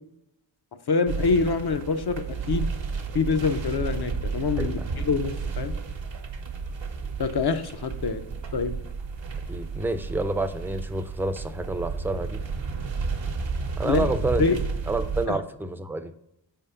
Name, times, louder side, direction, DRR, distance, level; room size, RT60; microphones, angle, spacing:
voice 1, 0.9-2.7 3.1-5.7 7.2-8.2 8.5-8.7 13.8-14.0 14.4-14.6 15.3-15.4, left 4 dB, 55° left, 8 dB, 0.6 m, -25 dB
sound 1, 1.1-15.3, right 4 dB, 70° right, 0.8 m, -32 dB
voice 2, 9.5-12.4 13.8-14.4 14.9-16.1, right 2 dB, 5° right, 8 dB, 0.4 m, -28 dB
4.9 x 3.7 x 5.5 m, 0.81 s
wide cardioid pair, 60°, 45 cm